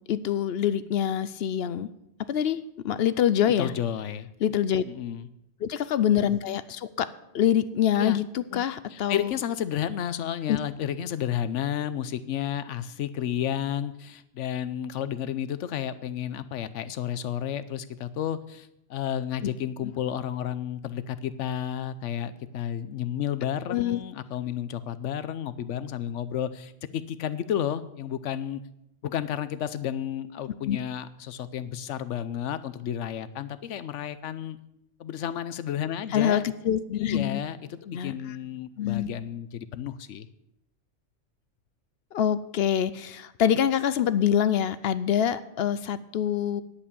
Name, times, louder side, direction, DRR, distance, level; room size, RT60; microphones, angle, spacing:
voice 1, 0.1-1.9 2.3-2.6 2.8-3.7 4.4-4.8 5.6-9.3 10.5-10.6 23.7-24.0 30.7-30.8 36.1-37.4 37.9-38.1 38.8-39.1 42.1-46.6, left 9 dB, 65° left, 15 dB, 0.7 m, -25 dB
voice 2, 3.6-4.3 4.8-5.3 7.9-8.2 8.5-8.6 8.9-28.6 29.0-34.6 35.0-36.4 36.9-40.3, left 10 dB, 80° left, 14 dB, 1.0 m, -32 dB
10.0 x 8.5 x 6.9 m, 0.83 s
omnidirectional pair, 1.2 m